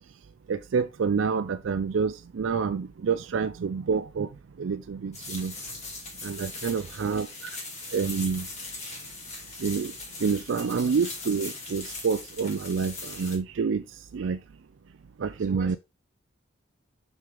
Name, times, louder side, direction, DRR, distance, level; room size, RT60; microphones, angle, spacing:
voice 1, 0.5-5.6 6.2-7.6 7.9-8.5 9.6-14.4 15.2-15.8, right 5 dB, 70° right, 0.4 m, -28 dB
sound 1, 5.1-13.4, left 3 dB, 35° left, 2.5 m, -40 dB
voice 2, 6.4-7.1 15.4-15.8, right 3 dB, 40° right, 1.7 m, -48 dB
6.3 x 6.2 x 3.4 m
head